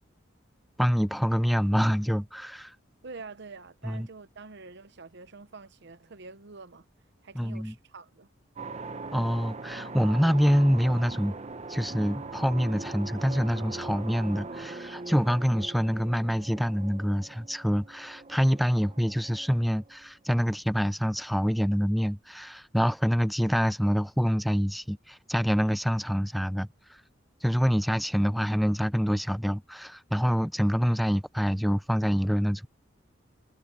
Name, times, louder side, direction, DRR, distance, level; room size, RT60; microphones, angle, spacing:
voice 1, 0.8-2.7 3.8-4.1 7.4-7.7 9.1-11.4 11.7-26.7 27.4-32.7, equal, ahead, 0.4 m, -26 dB
voice 2, 3.0-6.8 7.2-8.3, right 4 dB, 60° right, 0.9 m, -46 dB
sound 1, 8.6-20.0, right 3 dB, 35° right, 0.9 m, -41 dB
head